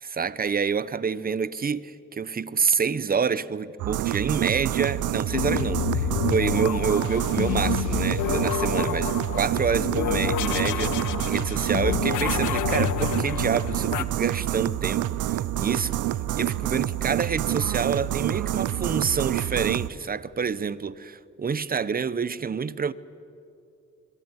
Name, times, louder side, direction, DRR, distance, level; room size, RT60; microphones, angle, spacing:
voice 1, 0.0-15.9 16.4-22.9, right 6 dB, 30° right, 0.9 m, -27 dB
sound 1, 3.8-19.9, right 13 dB, 80° right, 0.8 m, -27 dB
sound 2, 5.3-14.0, left 11 dB, 75° left, 0.9 m, -29 dB
24.5 x 22.0 x 9.7 m
cardioid pair, 90°, 30 cm